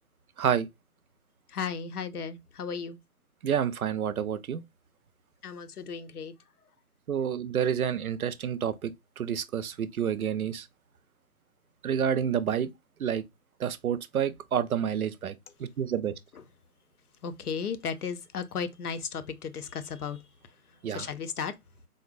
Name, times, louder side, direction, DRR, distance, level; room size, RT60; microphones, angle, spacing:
voice 1, 1.5-3.0 5.4-6.3 17.2-20.2 20.9-21.5, left 6 dB, 80° left, 0.7 m, -35 dB
voice 2, 3.4-4.6 7.1-8.9 9.2-10.7 11.8-12.7 13.0-13.2 13.6-15.3 15.6-16.1 20.8-21.1, right 8 dB, 70° right, 0.5 m, -29 dB
3.9 x 2.1 x 2.4 m
hypercardioid pair, 170°, 45 cm